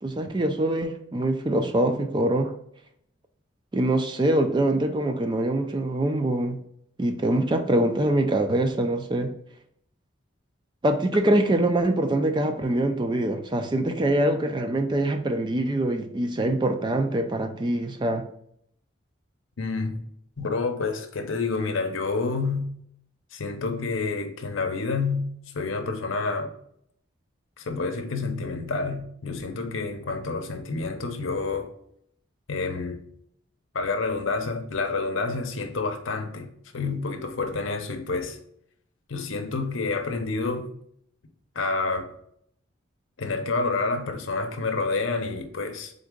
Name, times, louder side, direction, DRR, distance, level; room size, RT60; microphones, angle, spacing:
voice 1, 0.0-2.5 3.7-6.6 7.0-9.3 10.8-18.2, right 1 dB, 25° right, 0.4 m, -24 dB
voice 2, 19.6-20.0 20.4-22.7 23.3-26.5 27.6-31.7 32.5-33.0 33.7-38.4 39.1-40.7 41.5-42.1 43.2-45.9, left 3 dB, 80° left, 0.7 m, -28 dB
3.8 x 3.5 x 3.7 m
head